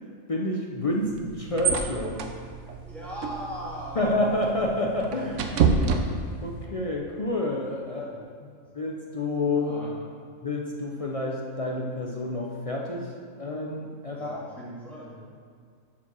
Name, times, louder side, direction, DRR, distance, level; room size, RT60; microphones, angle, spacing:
voice 1, 0.3-2.3 4.0-5.7 6.4-8.1 8.4-9.7 10.4-13.1 13.4-14.5, left 2 dB, 50° left, -2 dB, 0.4 m, -29 dB
sound 1, 0.9-6.7, right 5 dB, 65° right, 0.9 m, -29 dB
voice 2, 2.9-4.0 7.9-8.2 8.4-8.5 9.5-9.9 14.1-15.2, equal, ahead, -8 dB, 2.1 m, -39 dB
7.3 x 4.6 x 6.2 m, 2.1 s
omnidirectional pair, 1.5 m